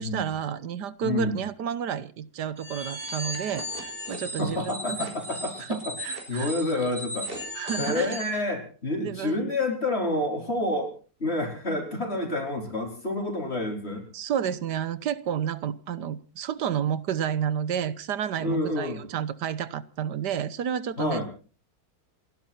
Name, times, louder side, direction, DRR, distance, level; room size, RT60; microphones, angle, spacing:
voice 1, 0.0-5.1 5.7-6.5 7.5-8.2 9.0-9.5 14.1-21.2, right 8 dB, 85° right, 16 dB, 1.6 m, -31 dB
voice 2, 1.0-1.4 4.4-5.9 6.3-7.3 7.8-10.9 11.2-14.0 18.4-19.0 21.0-21.3, left 2 dB, 40° left, 2 dB, 4.9 m, -28 dB
sound 1, 2.6-8.4, equal, 30° right, 6.3 m, -36 dB
29.0 x 11.5 x 4.4 m, 0.38 s
omnidirectional pair, 1.8 m